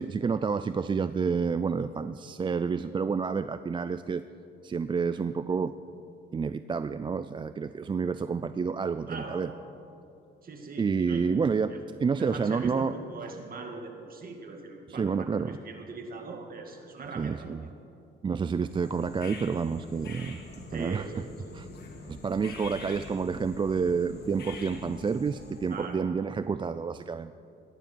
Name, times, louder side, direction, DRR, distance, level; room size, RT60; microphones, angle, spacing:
voice 1, 0.0-4.2 4.6-5.7 6.3-9.5 10.8-11.7 12.0-12.9 14.9-15.6 17.2-17.7 18.2-20.4 20.7-21.2 21.5-21.7 22.0-27.3, right 5 dB, 25° right, 12 dB, 0.3 m, -29 dB
voice 2, 9.1-9.5 10.4-11.2 12.2-17.7 20.7-21.8 22.4-22.5 25.7-26.1, right 3 dB, 45° right, 3 dB, 2.3 m, -41 dB
sound 1, 18.6-25.9, left 3 dB, 55° left, 2.3 m, -45 dB
18.0 x 13.0 x 4.6 m, 2.7 s
cardioid pair, 90°, 20 cm